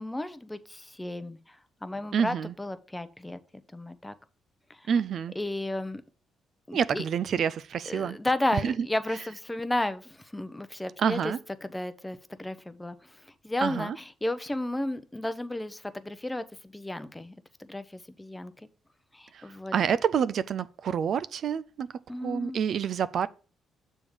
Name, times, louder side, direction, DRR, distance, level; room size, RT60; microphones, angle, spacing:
voice 1, 0.0-1.4 1.8-3.4 3.7-4.1 4.8-4.9 5.4-6.0 6.7-7.0 7.9-11.3 11.6-13.0 13.4-16.4 16.7-17.3 17.6-18.5 19.1-19.7 22.1-22.6, left 1 dB, 10° left, 0.6 m, -33 dB
voice 2, 2.1-2.5 4.9-5.3 6.7-8.2 8.5-8.7 11.0-11.4 13.6-14.0 19.3-19.4 19.7-21.9 22.2-23.3, right 7 dB, 60° right, 0.3 m, -27 dB
6.9 x 3.6 x 6.3 m
cardioid pair, 90°, 0 cm